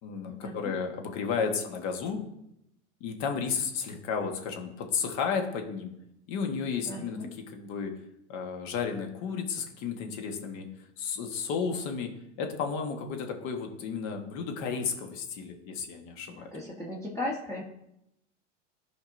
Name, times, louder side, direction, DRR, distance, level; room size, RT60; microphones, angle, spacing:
voice 1, 0.0-2.2 3.0-5.9 6.3-7.2 7.5-7.9 8.3-10.7 11.0-12.1 12.4-16.5, left 6 dB, 50° left, 4 dB, 1.5 m, -33 dB
voice 2, 6.8-7.3 16.3-17.6, left 1 dB, 10° left, -4 dB, 1.3 m, -36 dB
13.0 x 5.2 x 2.6 m, 0.82 s
hypercardioid pair, 95°, 37 cm